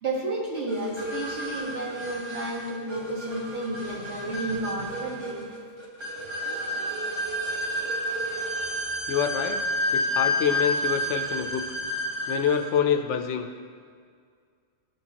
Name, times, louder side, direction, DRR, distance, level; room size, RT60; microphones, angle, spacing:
voice 1, 0.0-5.5 8.4-8.5, right 2 dB, 70° right, -4 dB, 1.7 m, -32 dB
sound 1, 0.7-12.6, equal, 25° right, 1.0 m, -30 dB
voice 2, 9.1-9.6 9.9-11.6 12.3-13.5, left 8 dB, 75° left, 5 dB, 0.9 m, -26 dB
12.5 x 4.5 x 2.9 m, 2.1 s
omnidirectional pair, 1.2 m